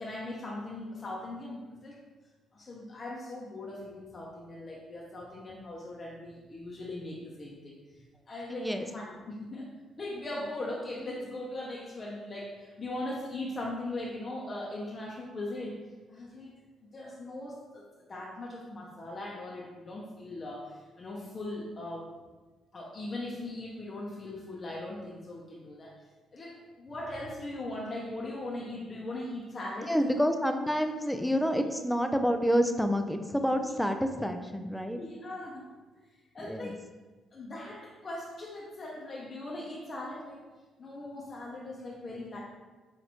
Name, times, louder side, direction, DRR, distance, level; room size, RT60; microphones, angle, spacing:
voice 1, 0.0-2.0 2.5-9.7 10.0-15.8 16.1-16.5 16.8-17.8 18.1-22.1 22.7-25.9 26.3-30.3 31.6-31.7 33.6-33.7 35.0-35.7 36.3-36.8 37.3-40.5 40.8-42.4, left 1 dB, 35° left, -3 dB, 0.7 m, -39 dB
voice 2, 8.5-8.9 29.9-35.0 36.4-36.7, equal, 5° left, 6 dB, 0.4 m, -28 dB
6.0 x 2.5 x 2.9 m, 1.2 s
cardioid pair, 90°, 0 cm